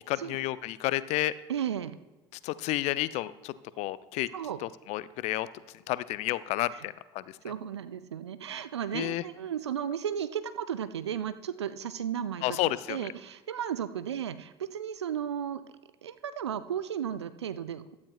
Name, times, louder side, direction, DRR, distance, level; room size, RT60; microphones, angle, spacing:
voice 1, 0.0-1.3 2.4-4.3 4.6-5.5 5.9-7.2 8.9-9.2 12.4-13.0, left 16 dB, 50° left, 17 dB, 0.5 m, -31 dB
voice 2, 1.5-2.0 4.3-4.6 6.7-6.8 7.4-15.6 16.0-18.0, right 9 dB, 80° right, 12 dB, 0.6 m, -34 dB
15.5 x 12.0 x 2.4 m, 1.2 s
figure-of-eight pair, 70°, 14 cm